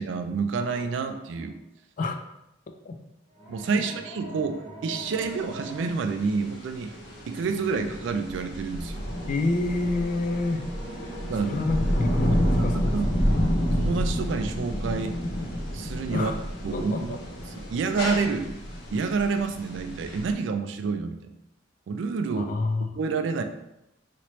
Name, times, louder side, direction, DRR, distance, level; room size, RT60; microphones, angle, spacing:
voice 1, 0.0-1.5 3.5-6.9 7.3-9.0 11.2-11.6 12.6-13.1 13.8-15.1 15.7-16.3 16.6-17.2 17.7-18.5 18.9-21.3 21.9-22.5 23.0-23.4, right 4 dB, 65° right, 7 dB, 0.3 m, -28 dB
Ambiance Grain Sound Effects, 0.6-1.5 3.3-5.9 6.8-8.1 8.8-12.9 14.2-17.9, equal, 80° left, 1.2 m, -43 dB
sound 1, 5.0-20.3, equal, 60° left, 0.8 m, -29 dB
voice 2, 9.3-10.6 10.9-13.4 16.1-16.4 16.7-17.2 22.4-23.0, left 2 dB, 40° left, 5 dB, 0.3 m, -29 dB
3.0 x 2.9 x 3.0 m, 0.87 s
head